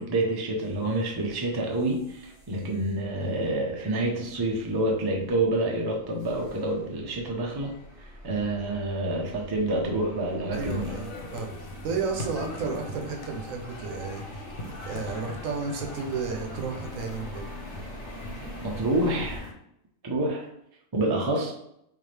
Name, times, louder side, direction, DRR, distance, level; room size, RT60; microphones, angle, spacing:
voice 1, 0.0-7.7 8.2-10.9 18.6-19.5 20.0-20.5 20.9-21.5, right 2 dB, 30° right, 0 dB, 0.4 m, -28 dB
sound 1, 0.6-19.4, equal, 5° right, 1.3 m, -45 dB
sound 2, 10.5-19.5, left 2 dB, 85° left, 1.0 m, -40 dB
voice 2, 10.5-17.5, right 4 dB, 80° right, 3 dB, 1.1 m, -33 dB
3.8 x 2.7 x 3.2 m, 0.76 s
omnidirectional pair, 1.4 m